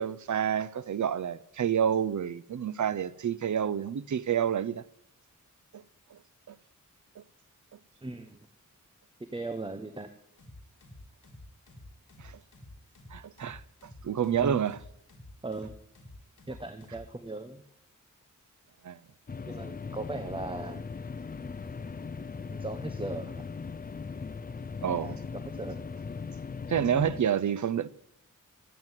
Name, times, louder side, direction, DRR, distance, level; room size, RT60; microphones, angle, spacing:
voice 1, 0.0-4.8 5.7-5.8 6.1-6.2 6.5-6.6 7.2-7.3 12.2-12.3 13.1-13.6 14.0-14.8 18.8-19.0 24.8-25.2 26.7-27.9, right 8 dB, 65° right, 0.7 m, -29 dB
voice 2, 8.0-8.5 9.2-10.1 14.4-14.6 15.4-15.7 16.5-17.6 19.5-20.8 22.5-23.4 24.9-25.8, right 2 dB, 15° right, 1.0 m, -38 dB
sound 1, 10.4-17.1, left 1 dB, 70° left, 3.6 m, -50 dB
sound 2, 19.3-27.2, left 5 dB, 30° left, 0.5 m, -39 dB
16.0 x 9.4 x 9.1 m
wide cardioid pair, 135°, 32 cm